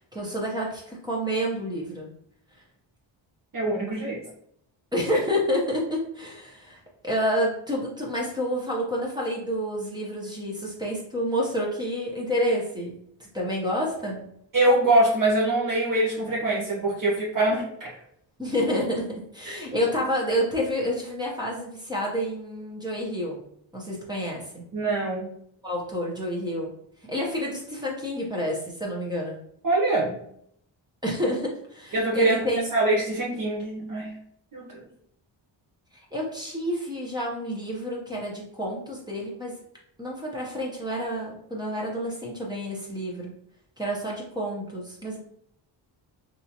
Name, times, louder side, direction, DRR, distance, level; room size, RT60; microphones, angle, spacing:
voice 1, 0.1-2.1 4.9-14.2 18.4-23.4 23.7-24.6 25.6-26.7 27.1-29.4 31.0-32.7 35.9-39.6 40.0-43.3 43.8-45.2, equal, 10° right, -3 dB, 0.9 m, -29 dB
voice 2, 3.5-4.2 14.5-17.9 19.5-19.6 24.7-25.3 29.6-30.2 31.9-32.4 32.7-34.1 34.5-34.9, right 2 dB, 45° right, -4 dB, 0.9 m, -24 dB
3.5 x 2.8 x 2.9 m, 0.70 s
wide cardioid pair, 135°, 47 cm